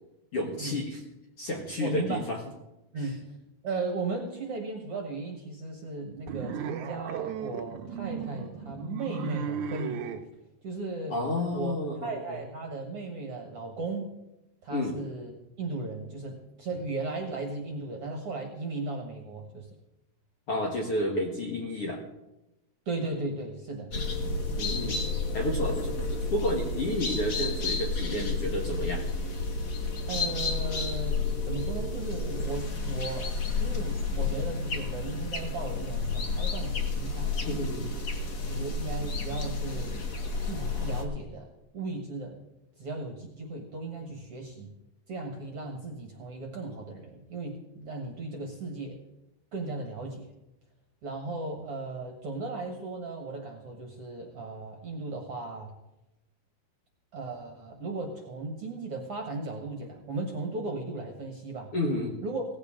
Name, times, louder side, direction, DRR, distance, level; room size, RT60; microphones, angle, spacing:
voice 1, 0.3-1.0 1.4-2.4 3.0-3.1 11.1-12.4 14.7-15.0 20.5-22.0 24.6-25.0 25.3-29.1 37.4-37.9 61.7-62.2, left 1 dB, 50° left, 0 dB, 1.9 m, -31 dB
voice 2, 1.8-2.2 2.9-3.3 3.6-10.0 10.6-11.1 11.5-11.8 12.0-14.1 14.6-15.3 15.6-19.7 22.9-23.9 30.1-33.3 33.6-37.3 38.5-39.9 40.4-41.5 41.7-42.4 42.8-44.7 45.1-49.0 49.5-50.3 51.0-55.7 57.1-61.7 62.2-62.4, right 3 dB, 55° right, 2 dB, 1.8 m, -36 dB
sound 1, 6.3-10.2, right 7 dB, 70° right, 1.9 m, -36 dB
sound 2, 23.9-41.0, left 3 dB, 70° left, 0.9 m, -31 dB
17.5 x 14.5 x 3.8 m, 0.94 s
omnidirectional pair, 4.3 m